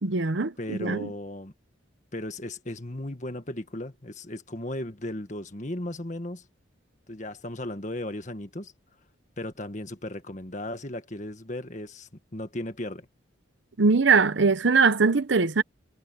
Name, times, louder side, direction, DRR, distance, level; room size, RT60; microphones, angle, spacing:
voice 1, 0.0-1.1 13.8-15.6, right 4 dB, 65° right, 0.8 m, -21 dB
voice 2, 0.6-1.5 2.1-6.4 7.1-8.7 9.4-13.1, left 1 dB, 40° left, 1.7 m, -36 dB
head